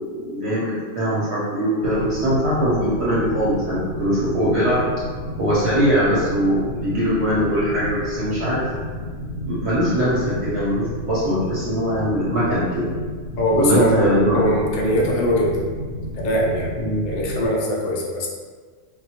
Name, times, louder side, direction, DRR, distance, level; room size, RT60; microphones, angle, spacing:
voice 1, 0.0-4.8 5.4-8.6 9.5-12.9 13.5-14.5 16.8-17.1, equal, 65° right, -9 dB, 0.9 m, -21 dB
sound 1, 1.8-17.5, equal, 60° left, 0.7 m, -31 dB
voice 2, 13.4-14.0 14.3-15.7 16.1-16.8 17.0-18.3, equal, 80° left, -3 dB, 0.4 m, -21 dB
2.2 x 2.1 x 2.8 m, 1.5 s
omnidirectional pair, 1.3 m